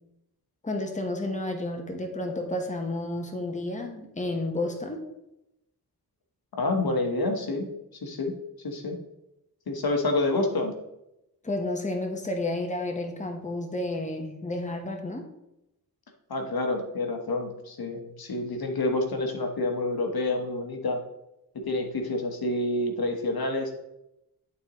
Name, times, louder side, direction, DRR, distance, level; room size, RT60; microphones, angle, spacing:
voice 1, 0.6-5.0 11.4-15.2, left 2 dB, 20° left, 3 dB, 1.1 m, -31 dB
voice 2, 6.6-7.7 8.0-8.3 8.6-9.0 9.7-10.7 16.3-21.0 21.5-23.7, left 2 dB, 65° left, 3 dB, 1.2 m, -28 dB
11.5 x 4.1 x 3.0 m, 0.87 s
wide cardioid pair, 75°, 39 cm